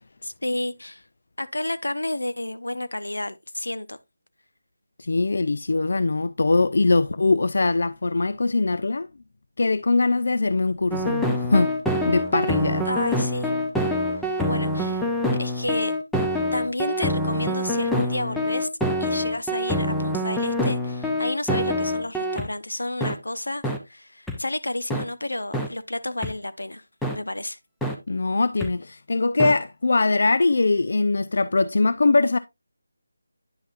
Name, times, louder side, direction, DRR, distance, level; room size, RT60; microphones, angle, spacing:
voice 1, 0.2-1.0 1.4-4.0 12.8-13.5 14.5-15.0 15.4-15.9 16.5-18.7 19.0-26.8 27.1-27.6, left 1 dB, 85° left, 0.8 m, -30 dB
voice 2, 5.0-9.1 9.6-11.7 12.0-12.9 28.1-32.4, left 3 dB, 60° left, 0.4 m, -22 dB
sound 1, 10.9-22.5 23.0-23.1 23.6-23.8 24.3-24.4 24.9-25.0 25.5-25.7 26.2-26.3 27.0-27.2 27.8-27.9 28.6-28.7 29.4-29.5, left 1 dB, ahead, 0.6 m, -25 dB
9.7 x 5.6 x 2.5 m
figure-of-eight pair, 165°, 0 cm